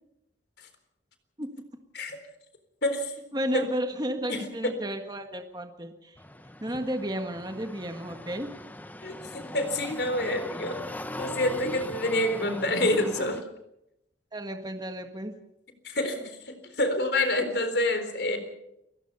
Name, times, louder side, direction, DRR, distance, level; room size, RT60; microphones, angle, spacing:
voice 1, 2.8-3.3 3.5-3.6 4.3-4.4 9.0-10.8 11.2-13.4 15.8-18.4, left 1 dB, 60° left, 8 dB, 3.9 m, -27 dB
voice 2, 3.3-6.2 6.6-8.5 14.3-15.3, equal, 20° right, 5 dB, 1.6 m, -33 dB
sound 1, 6.2-13.4, left 1 dB, 10° left, 1.0 m, -40 dB
29.5 x 16.5 x 5.6 m, 0.84 s
head